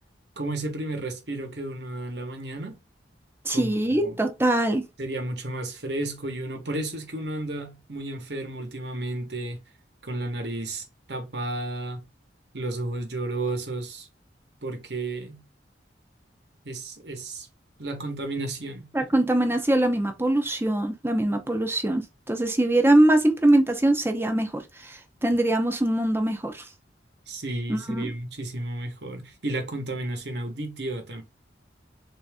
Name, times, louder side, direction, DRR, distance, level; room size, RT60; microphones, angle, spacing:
voice 1, 0.4-2.8 3.5-4.2 5.0-9.6 10.0-12.0 12.5-14.1 14.6-15.4 16.6-17.5 17.8-18.9 27.3-31.2, right 2 dB, 60° right, 1.2 m, -32 dB
voice 2, 3.5-4.8 18.9-26.6 27.7-28.1, right 1 dB, 10° right, 0.7 m, -23 dB
3.8 x 2.7 x 3.5 m
head